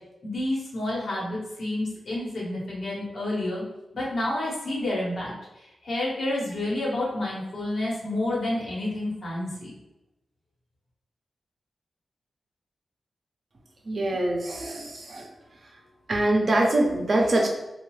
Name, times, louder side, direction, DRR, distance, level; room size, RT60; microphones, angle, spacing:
voice 1, 0.2-3.6 3.9-9.7, left 1 dB, 65° left, -5 dB, 1.1 m, -29 dB
voice 2, 13.9-15.3 16.1-17.5, right 1 dB, 55° right, 0 dB, 0.6 m, -24 dB
2.6 x 2.3 x 3.2 m, 0.95 s
cardioid pair, 75°, 0 cm